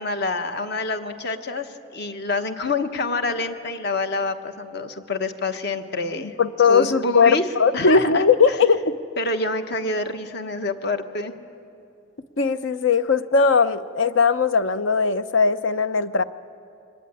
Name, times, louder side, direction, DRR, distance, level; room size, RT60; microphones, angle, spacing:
voice 1, 0.0-6.3 6.7-7.4 7.7-8.3 9.2-11.3, left 3 dB, 55° left, 8 dB, 1.3 m, -27 dB
voice 2, 6.2-9.0 12.4-16.2, left 5 dB, 75° left, 13 dB, 0.8 m, -19 dB
24.0 x 19.5 x 9.8 m, 2.6 s
head